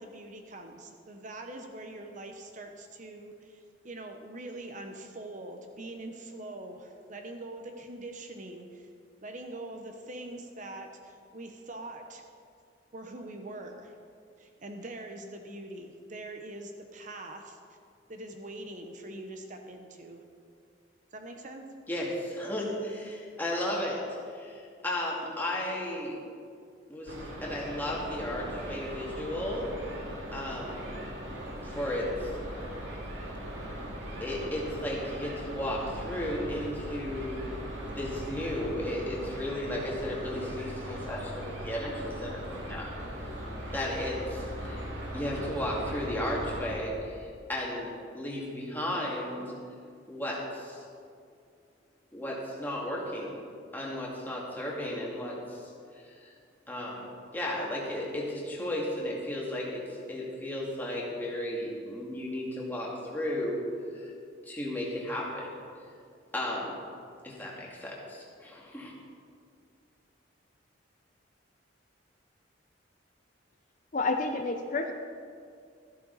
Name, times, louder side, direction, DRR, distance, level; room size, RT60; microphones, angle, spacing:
voice 1, 0.0-8.9 9.2-12.2 12.9-13.9 14.4-17.6 18.1-20.2 21.1-21.7, right 2 dB, 40° right, 4 dB, 0.9 m, -43 dB
voice 2, 21.9-26.2 26.9-29.7 30.3-30.9 31.6-32.3 34.2-37.4 37.9-42.9 43.7-44.9 45.1-49.5 50.1-50.8 52.1-53.4 53.7-56.3 56.7-57.0 57.3-59.8 60.1-63.6 63.9-64.1 64.4-65.6 66.3-66.7 67.2-68.9, left 1 dB, 10° left, -4 dB, 2.2 m, -34 dB
sound 1, 27.1-46.8, equal, 70° right, 2.3 m, -39 dB
voice 3, 73.9-74.9, left 3 dB, 40° left, 5 dB, 0.6 m, -29 dB
13.5 x 12.0 x 4.1 m, 2.3 s
head